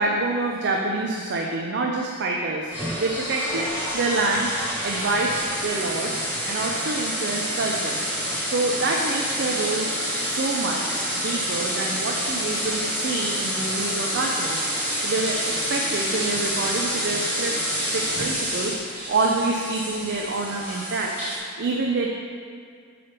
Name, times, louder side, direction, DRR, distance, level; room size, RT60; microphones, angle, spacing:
voice 1, 0.0-4.5 4.8-8.0 8.4-9.9 10.2-14.7 15.0-18.8 19.1-21.1 21.6-22.1, right 2 dB, 55° right, 0 dB, 0.5 m, -27 dB
sound 1, 2.7-21.4, equal, 5° right, 1.8 m, -28 dB
7.6 x 3.4 x 5.8 m, 2.2 s
head